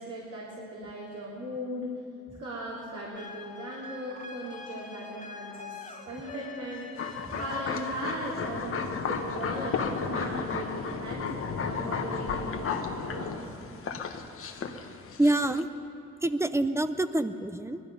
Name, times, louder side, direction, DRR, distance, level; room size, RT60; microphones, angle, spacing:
voice 1, 0.0-1.9 2.4-6.9 7.4-13.5, right 1 dB, 55° right, -5 dB, 3.2 m, -38 dB
sound 1, 3.1-8.7, left 4 dB, 25° left, 1.5 m, -44 dB
sound 2, 7.0-15.6, left 5 dB, 45° left, 1.2 m, -35 dB
sound 3, 8.3-13.4, left 5 dB, 70° left, 1.8 m, -35 dB
voice 2, 15.2-15.7 16.2-17.8, right 1 dB, 10° right, 11 dB, 0.6 m, -26 dB
19.0 x 13.0 x 5.5 m, 2.7 s
cardioid pair, 90°, 30 cm